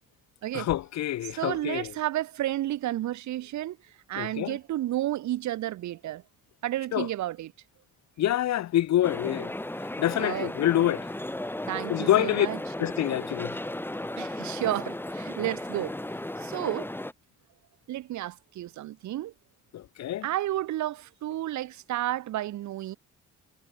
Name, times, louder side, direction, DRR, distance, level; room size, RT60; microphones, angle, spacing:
voice 1, 0.5-1.9 4.2-4.6 6.9-7.1 8.2-9.5 10.0-11.1 11.9-12.5 12.8-13.6 19.7-20.3, left 13 dB, 65° left, 0.8 m, -26 dB
voice 2, 1.2-3.8 4.1-6.2 6.6-7.5 10.2-10.5 11.7-12.6 14.2-16.0 16.4-16.9 17.9-19.3 20.2-23.0, right 14 dB, 70° right, 0.9 m, -31 dB
sound 1, 9.0-17.1, left 1 dB, 5° left, 2.0 m, -35 dB
cardioid pair, 90°, 30 cm